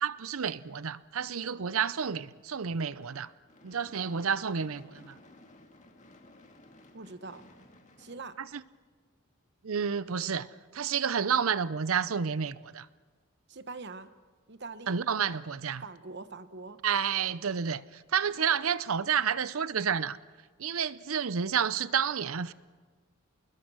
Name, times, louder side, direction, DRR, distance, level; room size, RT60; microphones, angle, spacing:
voice 1, 0.0-3.3 3.6-5.2 8.4-8.6 9.6-10.5 10.7-12.9 14.9-15.8 16.8-20.2 20.6-22.5, right 7 dB, 80° right, 0.7 m, -30 dB
Gunshot gunfire / Fireworks, 2.8-9.1, left 1 dB, 35° left, 1.9 m, -57 dB
voice 2, 6.9-7.4 8.0-8.4 13.5-14.1 14.5-14.9 15.8-16.8, right 3 dB, 55° right, 1.1 m, -43 dB
27.0 x 21.0 x 6.2 m
head